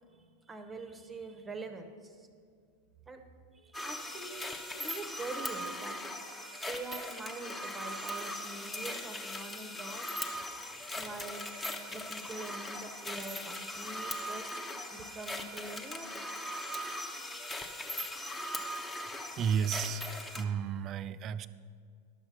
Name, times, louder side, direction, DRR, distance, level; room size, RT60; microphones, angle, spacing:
voice 1, 0.1-2.3 3.1-3.2 3.5-6.0 6.7-10.3 11.0-11.4 11.9-14.5 14.9-16.3, right 3 dB, 15° right, 6 dB, 0.9 m, -44 dB
sound 1, 3.7-20.4, left 1 dB, 10° left, 0.8 m, -40 dB
voice 2, 19.4-21.5, right 7 dB, 30° right, 15 dB, 0.4 m, -33 dB
11.5 x 7.2 x 5.5 m, 2.2 s
figure-of-eight pair, 90°, 0 cm